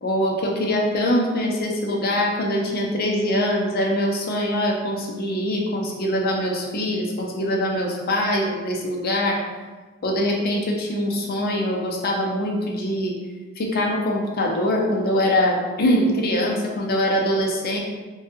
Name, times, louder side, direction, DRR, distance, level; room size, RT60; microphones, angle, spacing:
voice 1, 0.0-9.4 10.0-13.1 13.6-17.8, equal, 45° left, 0 dB, 0.5 m, -23 dB
3.1 x 2.3 x 2.9 m, 1.3 s
head